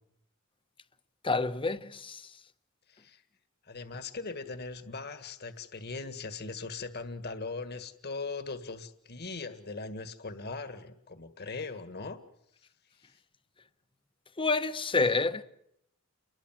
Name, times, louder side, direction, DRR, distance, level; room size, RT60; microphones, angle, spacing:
voice 1, 1.2-2.2 14.4-15.4, left 3 dB, 25° left, 1.0 m, -28 dB
voice 2, 2.9-3.2 3.7-12.2, left 3 dB, 50° left, 1.9 m, -39 dB
29.5 x 21.5 x 7.5 m
head